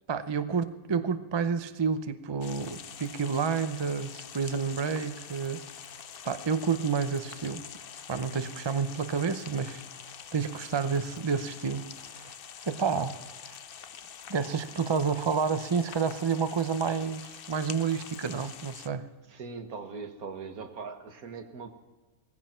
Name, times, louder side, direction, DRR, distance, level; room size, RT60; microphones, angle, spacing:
voice 1, 0.1-5.7 6.2-7.6 8.1-9.8 10.3-12.3 12.7-13.2 13.5-13.6 14.3-19.1, right 5 dB, 40° right, 11 dB, 0.4 m, -29 dB
sound 1, 2.4-18.9, left 8 dB, 55° left, 0.6 m, -45 dB
voice 2, 19.3-21.7, right 4 dB, 75° right, 6 dB, 1.8 m, -40 dB
19.0 x 15.5 x 4.4 m, 1.3 s
omnidirectional pair, 1.6 m